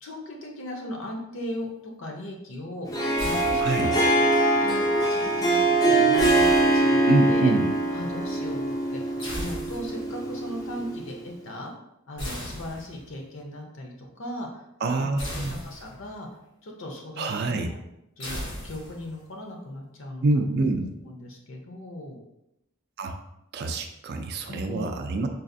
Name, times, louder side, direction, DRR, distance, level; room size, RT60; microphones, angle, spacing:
voice 1, 0.0-2.9 3.2-4.2 4.6-7.5 7.9-9.0 9.3-11.7 12.1-14.7 15.0-16.3 16.6-17.8 18.2-20.5 21.0-22.2 24.5-24.9, left 1 dB, 65° left, 1 dB, 0.7 m, -38 dB
Harp, 2.8-11.1, right 2 dB, 15° left, 0.4 m, -23 dB
sound 1, 3.2-4.1 6.2-7.3 9.2-10.2 12.2-13.2 15.2-16.2 18.2-19.2, equal, 80° left, 1.1 m, -37 dB
voice 2, 3.6-3.9 7.1-7.7 14.8-15.6 17.2-17.7 20.2-20.9 23.0-23.2 23.5-25.3, right 3 dB, 50° right, 5 dB, 0.4 m, -26 dB
3.9 x 2.4 x 2.6 m, 0.85 s
head